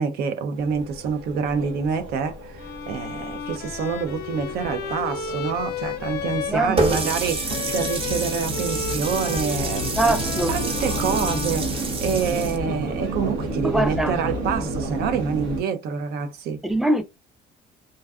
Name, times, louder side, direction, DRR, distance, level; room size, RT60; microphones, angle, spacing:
voice 1, 0.0-10.2 10.5-16.6, right 6 dB, 70° right, 0.5 m, -27 dB
sound 1, 0.6-15.6, right 1 dB, 85° right, 0.9 m, -32 dB
Bowed string instrument, 2.6-12.3, left 6 dB, 70° left, 0.5 m, -34 dB
voice 2, 6.5-7.0 10.0-10.6 13.6-14.2 16.6-17.0, right 1 dB, ahead, 0.4 m, -23 dB
Water tap faucet, 6.8-12.6, right 3 dB, 30° right, 0.7 m, -29 dB
2.5 x 2.3 x 2.2 m
cardioid pair, 110°, 17 cm